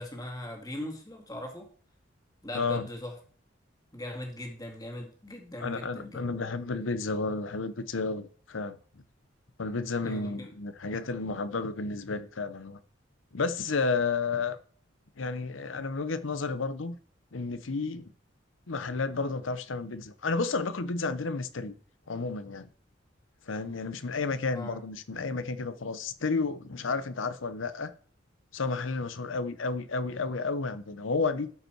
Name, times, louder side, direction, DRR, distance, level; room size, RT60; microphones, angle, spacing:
voice 1, 0.0-1.7 2.4-3.2 3.9-6.3 10.0-10.5 24.5-24.8, left 1 dB, 20° left, 2.0 m, -39 dB
voice 2, 2.5-2.9 5.6-8.8 9.6-12.8 13.3-14.6 15.2-17.0 17.3-18.1 18.7-21.7 22.1-22.7 23.5-27.9 28.5-31.5, left 4 dB, 85° left, 0.8 m, -31 dB
12.5 x 5.3 x 4.5 m
head